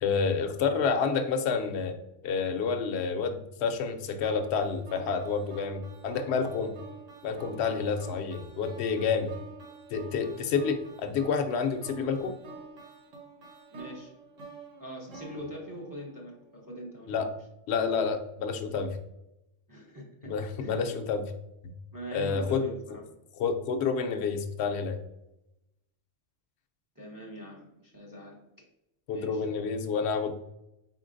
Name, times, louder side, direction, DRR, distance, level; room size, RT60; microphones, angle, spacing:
voice 1, 0.0-1.9 2.2-6.7 7.2-9.3 9.9-12.3 17.1-17.3 17.7-19.0 20.2-21.2 21.6-21.7 22.1-22.6 23.4-25.0 29.1-30.3, left 5 dB, 65° left, 7 dB, 0.8 m, -29 dB
sound 1, 4.2-16.4, right 3 dB, 85° right, 1.3 m, -48 dB
voice 2, 13.7-14.1 14.8-17.3 19.7-20.8 21.9-23.0 26.9-28.4 29.1-29.4, equal, 20° right, -2 dB, 0.8 m, -43 dB
4.4 x 4.1 x 2.5 m, 0.89 s
omnidirectional pair, 1.3 m